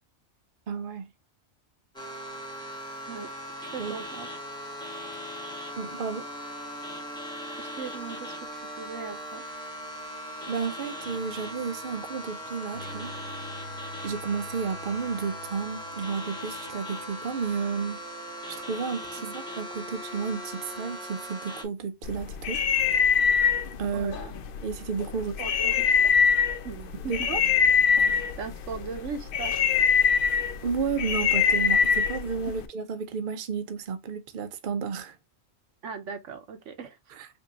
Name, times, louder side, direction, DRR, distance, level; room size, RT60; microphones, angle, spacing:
voice 1, 0.7-1.1 3.8-4.1 5.8-6.3 10.5-13.1 13.6-13.8 14.0-18.0 18.5-22.6 23.8-24.1 24.6-25.4 27.1-27.4 30.6-35.2 37.1-37.3, right 5 dB, 50° right, 0.7 m, -32 dB
sound 1, 1.9-21.6, equal, 5° left, 1.2 m, -39 dB
voice 2, 3.6-4.3 7.6-9.4 19.2-19.3 23.9-24.3 25.1-26.1 26.6-27.3 28.4-29.5 32.5-32.6 35.8-37.0, right 5 dB, 75° right, 1.1 m, -39 dB
sound 2, 11.0-12.2 12.7-17.9, left 1 dB, 90° right, 1.5 m, -47 dB
sound 3, 22.0-32.7, left 6 dB, 60° left, 0.6 m, -24 dB
5.3 x 2.7 x 2.7 m
omnidirectional pair, 1.3 m